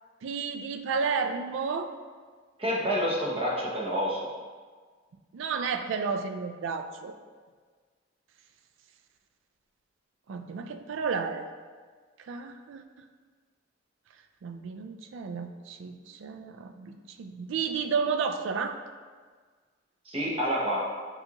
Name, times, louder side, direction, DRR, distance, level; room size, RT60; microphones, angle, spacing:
voice 1, 0.2-1.9 5.3-7.2 10.3-11.5 12.2-12.8 14.4-18.8, right 5 dB, 70° right, 7 dB, 0.3 m, -32 dB
voice 2, 2.6-4.3 20.1-20.9, equal, 30° right, -3 dB, 0.8 m, -28 dB
6.5 x 2.4 x 2.9 m, 1.5 s
head